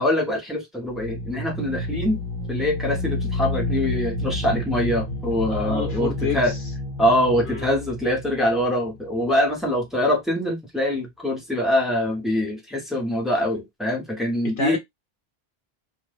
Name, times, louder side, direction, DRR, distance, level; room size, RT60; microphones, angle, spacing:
voice 1, 0.0-2.2 2.5-6.5 7.0-14.8, left 1 dB, ahead, 1.0 m, -24 dB
sound 1, 0.9-9.5, left 1 dB, 30° left, 1.0 m, -30 dB
voice 2, 5.4-6.6 7.4-7.8 14.6-14.8, left 5 dB, 80° left, 1.0 m, -29 dB
2.5 x 2.5 x 3.3 m
omnidirectional pair, 1.1 m